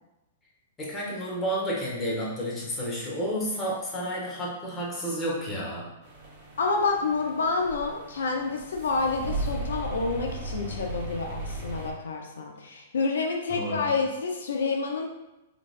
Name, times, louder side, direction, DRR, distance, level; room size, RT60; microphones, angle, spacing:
voice 1, 0.8-5.9 13.5-14.0, equal, 20° left, -5 dB, 1.4 m, -31 dB
sound 1, 6.0-11.9, right 2 dB, 35° right, 1.2 m, -36 dB
voice 2, 6.6-15.1, left 4 dB, 75° left, 2 dB, 0.7 m, -28 dB
4.0 x 3.2 x 2.5 m, 0.94 s
hypercardioid pair, 110°, 0 cm